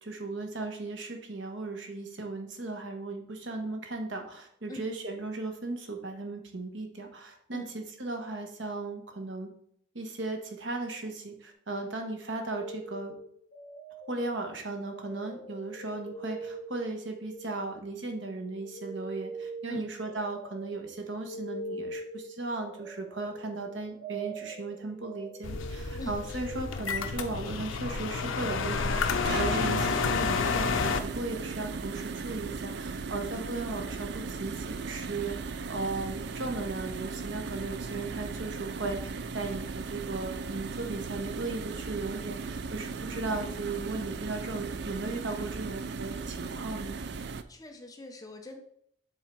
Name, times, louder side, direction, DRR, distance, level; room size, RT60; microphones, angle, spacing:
voice 1, 0.0-9.5 9.9-13.1 14.1-35.4 35.7-47.0, right 3 dB, 75° right, 4 dB, 1.2 m, -36 dB
sound 1, 12.0-18.0 18.3-26.9, right 2 dB, 55° left, 1.3 m, -43 dB
sound 2, 25.4-31.0, left 5 dB, 85° left, 0.6 m, -30 dB
sound 3, 28.6-47.4, right 4 dB, 55° right, 0.4 m, -37 dB
voice 2, 47.5-48.6, left 1 dB, 20° left, 4 dB, 0.7 m, -41 dB
7.5 x 3.7 x 4.6 m, 0.67 s
head